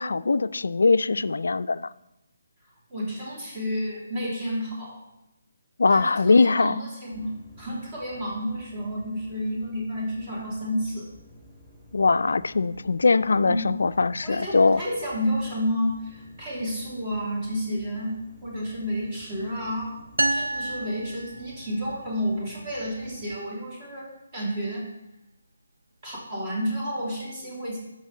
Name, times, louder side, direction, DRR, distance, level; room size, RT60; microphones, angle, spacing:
voice 1, 0.0-1.9 5.8-6.8 11.9-14.8, left 3 dB, 65° left, 15 dB, 0.3 m, -21 dB
voice 2, 2.9-5.0 5.9-7.3 7.6-11.1 13.5-13.7 14.2-20.0 20.3-24.9 26.0-27.8, equal, 30° right, -3 dB, 3.1 m, -31 dB
sound 1, 7.1-23.4, left 1 dB, 10° right, 3.4 m, -52 dB
sound 2, 20.2-22.0, right 2 dB, 75° right, 0.3 m, -29 dB
12.5 x 5.3 x 3.8 m, 0.91 s
figure-of-eight pair, 145°, 0 cm